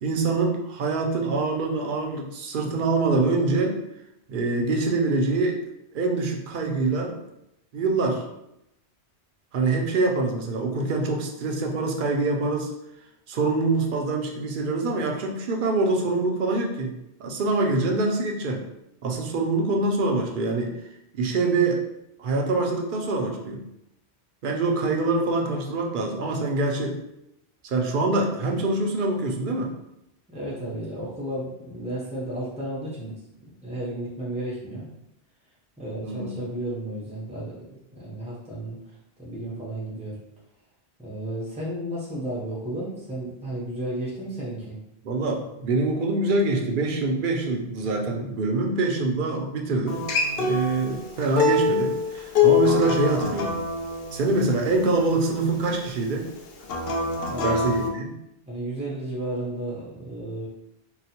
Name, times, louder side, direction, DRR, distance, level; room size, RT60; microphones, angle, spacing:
voice 1, 0.0-3.8 4.3-5.6 5.9-7.1 7.7-8.2 9.5-12.7 13.3-16.9 17.2-18.6 19.0-20.7 21.1-21.8 22.2-23.6 24.4-27.0 27.6-29.7 36.0-36.4 45.0-50.0 50.4-53.6 54.1-56.3 57.4-58.1, right 3 dB, 60° right, 1 dB, 0.6 m, -25 dB
voice 2, 30.3-33.2 33.4-34.8 35.8-40.2 41.0-44.8 57.3-57.6 58.5-60.5, right 1 dB, 10° right, -7 dB, 0.4 m, -33 dB
Acoustic guitar, 49.9-55.1 56.6-57.9, left 5 dB, 70° left, 0.8 m, -24 dB
3.8 x 2.0 x 2.8 m, 0.83 s
omnidirectional pair, 1.1 m